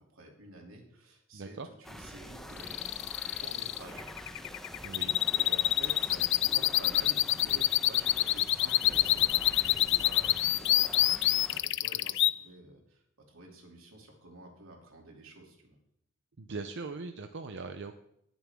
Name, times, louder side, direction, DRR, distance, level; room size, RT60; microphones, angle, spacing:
voice 1, 0.0-4.1 5.3-15.8, right 1 dB, 90° right, 0 dB, 2.9 m, -51 dB
voice 2, 1.3-1.7 4.8-5.2 16.4-18.0, right 3 dB, 60° right, 7 dB, 0.6 m, -40 dB
sound 1, 1.8-11.6, equal, ahead, 0.9 m, -46 dB
sound 2, 2.6-12.3, left 15 dB, 60° left, 0.3 m, -26 dB
18.5 x 7.1 x 3.6 m, 0.77 s
head